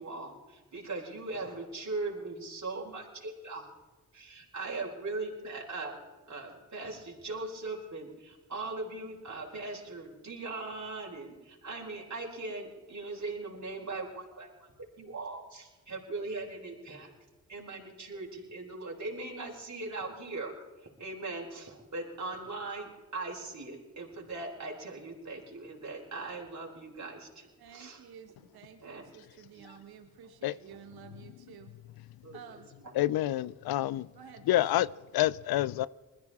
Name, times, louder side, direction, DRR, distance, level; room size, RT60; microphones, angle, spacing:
voice 1, 0.0-3.7 4.1-6.0 6.3-14.5 15.0-17.1 17.5-20.5 21.0-28.0 28.8-29.0 29.5-29.7 32.2-32.4, right 3 dB, 50° right, 4.4 m, -40 dB
voice 2, 27.6-31.7 32.3-32.7 34.1-34.8, right 8 dB, 85° right, 1.3 m, -51 dB
voice 3, 33.0-34.1 34.5-34.9 35.1-35.9, left 14 dB, 80° left, 0.5 m, -27 dB
21.0 x 14.0 x 3.7 m
supercardioid pair, 40°, 36 cm